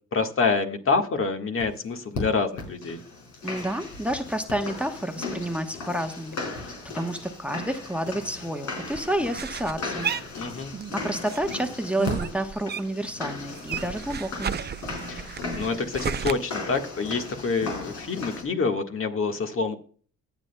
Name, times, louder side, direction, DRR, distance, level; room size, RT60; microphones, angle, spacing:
voice 1, 0.1-3.0 10.4-10.7 15.1-19.8, left 4 dB, 45° left, 5 dB, 1.5 m, -27 dB
sound 1, 1.6-1.7 2.1-2.2 2.6-18.4, left 3 dB, 75° left, 4.5 m, -37 dB
voice 2, 3.4-10.1 10.9-14.5, right 1 dB, 5° right, 6 dB, 1.0 m, -30 dB
sound 2, 8.9-11.0 11.3-13.1 13.4-16.3, right 7 dB, 35° right, 0.6 m, -33 dB
19.5 x 7.1 x 2.2 m, 0.43 s
cardioid pair, 90°, 30 cm